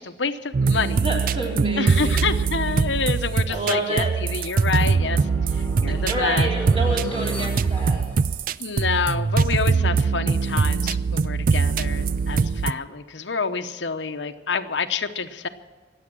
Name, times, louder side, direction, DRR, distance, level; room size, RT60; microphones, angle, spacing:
voice 1, 0.0-1.1 1.8-5.2 5.5-6.5 8.6-15.5, left 5 dB, 90° left, 8 dB, 0.9 m, -28 dB
sound 1, 0.5-12.7, right 5 dB, 50° right, 0.4 m, -22 dB
voice 2, 1.0-2.2 3.5-4.1 6.1-8.0, right 1 dB, 30° right, -2 dB, 4.1 m, -28 dB
sound 2, 3.8-8.8, left 1 dB, 10° left, 1.1 m, -40 dB
24.5 x 8.5 x 6.2 m, 1.4 s
head